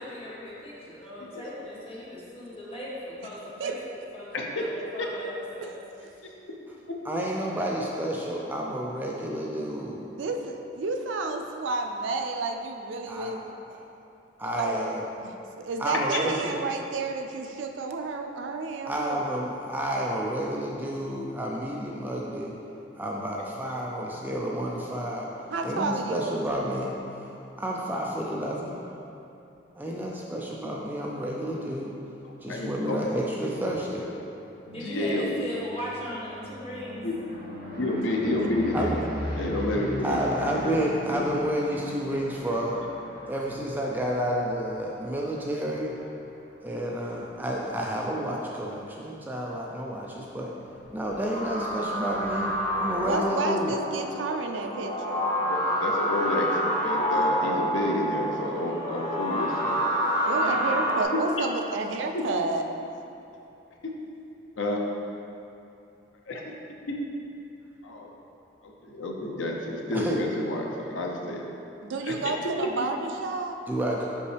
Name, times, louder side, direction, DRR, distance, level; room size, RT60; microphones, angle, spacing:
voice 1, 0.0-3.8 4.1-5.8 6.2-6.3 34.7-37.0, left 1 dB, 30° left, -7 dB, 1.2 m, -39 dB
voice 2, 4.3-4.7 5.0-5.1 6.9-7.0 9.7-9.8 15.9-16.2 23.8-24.2 32.2-34.1 34.7-35.5 37.0-37.1 37.8-38.9 39.4-40.8 41.1-41.5 55.5-59.8 60.4-60.7 61.1-61.2 64.6-64.8 66.3-66.5 66.9-67.0 67.8-68.1 68.6-71.4 72.0-72.2, left 1 dB, 85° left, 0 dB, 0.7 m, -30 dB
voice 3, 7.1-10.0 13.1-13.4 13.7-13.8 14.4-15.0 15.8-16.6 18.8-22.6 23.0-25.3 25.6-27.3 27.6-28.8 29.8-32.0 32.4-34.1 38.7-38.9 40.0-42.8 43.3-45.9 46.6-50.5 50.9-53.7 69.9-70.2 73.7-74.1, equal, 10° right, -2 dB, 0.3 m, -30 dB
voice 4, 10.2-13.5 14.5-14.9 15.2-19.2 25.5-26.4 53.0-55.3 60.2-62.6 71.8-73.6, right 3 dB, 75° right, 4 dB, 0.4 m, -31 dB
sound 1, 34.5-48.5 48.9-49.4 49.7-49.8 50.0-50.1 50.3-53.1, equal, 50° right, 1.2 m, -40 dB
sound 2, 51.3-61.0, equal, 65° left, 1.3 m, -28 dB
5.4 x 5.3 x 3.3 m, 2.8 s
head